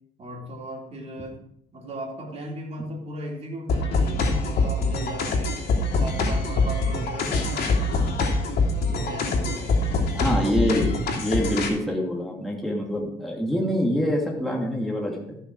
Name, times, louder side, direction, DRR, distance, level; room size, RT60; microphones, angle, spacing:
voice 1, 0.2-1.4 1.7-5.6 6.0-8.3 8.8-9.9, right 1 dB, 40° right, -1 dB, 3.5 m, -36 dB
sound 1, 3.7-11.7, left 2 dB, 60° left, 3.0 m, -24 dB
voice 2, 10.1-15.4, equal, ahead, -2 dB, 2.7 m, -25 dB
14.5 x 6.3 x 4.8 m, 0.73 s
cardioid pair, 110°, 17 cm